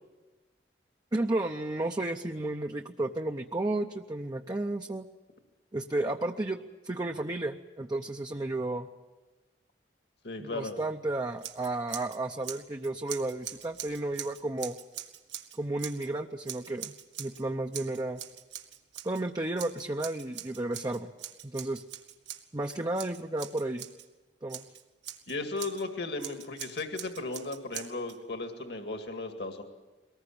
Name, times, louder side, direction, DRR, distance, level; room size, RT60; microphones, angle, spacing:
voice 1, 1.1-5.0 5.7-8.9 10.4-14.8 15.6-16.9 17.2-18.2 19.0-21.1 21.4-21.8 22.5-23.9 24.4-24.6, right 2 dB, 20° right, 3 dB, 0.7 m, -32 dB
voice 2, 10.2-10.8 25.3-29.6, left 3 dB, 65° left, 5 dB, 2.0 m, -36 dB
Scissors, 11.4-12.2 12.4-16.1 16.5-17.4 17.7-19.2 19.6-24.1 24.5-25.8 26.2-28.2, right 11 dB, 85° right, 1.8 m, -43 dB
23.0 x 19.5 x 8.6 m, 1.2 s
head